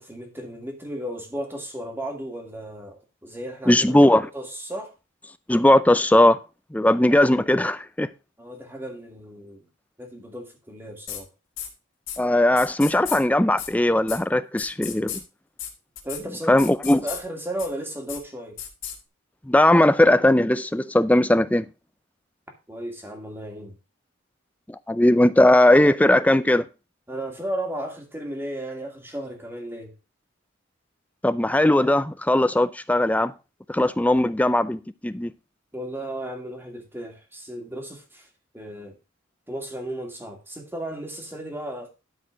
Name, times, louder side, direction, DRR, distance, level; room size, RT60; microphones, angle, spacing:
voice 1, 0.0-4.9 8.4-9.6 10.0-11.3 16.0-16.6 17.0-18.6 22.7-23.7 27.1-29.9 35.7-38.3 38.5-39.0 39.5-41.9, right 1 dB, 10° right, 2.3 m, -34 dB
voice 2, 3.7-4.2 5.5-6.4 6.7-8.1 12.2-15.2 16.5-17.0 19.5-21.6 24.7-26.7 31.2-33.3 33.7-35.3, left 1 dB, 5° left, 0.5 m, -18 dB
sound 1, 11.1-11.2 11.6-11.7 12.1-12.2 12.6-13.2 13.6-13.7 14.1-14.2 14.6-15.2 15.6-15.7 16.0-16.2 16.6-17.2 17.6-17.7 18.1-18.2 18.6-19.0, left 9 dB, 70° left, 3.0 m, -34 dB
12.5 x 4.7 x 5.2 m
head